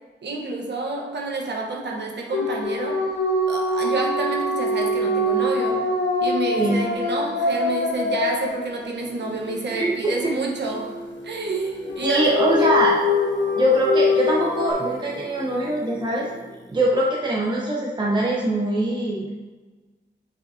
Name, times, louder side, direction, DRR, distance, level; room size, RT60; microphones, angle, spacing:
voice 1, 0.2-3.0 3.5-5.8 6.2-12.3 12.6-12.7, right 3 dB, 70° right, -1 dB, 1.2 m, -29 dB
sound 1, 2.3-9.3 11.9-14.7, left 2 dB, 85° left, 1.0 m, -23 dB
voice 2, 6.6-6.9 9.7-9.9 12.0-13.0 13.5-16.3 16.7-19.4, right 1 dB, 25° right, -4 dB, 0.8 m, -22 dB
Singing, 9.0-16.9, left 1 dB, 15° left, 0.6 m, -38 dB
8.1 x 4.9 x 2.8 m, 1.3 s
wide cardioid pair, 140°, 18 cm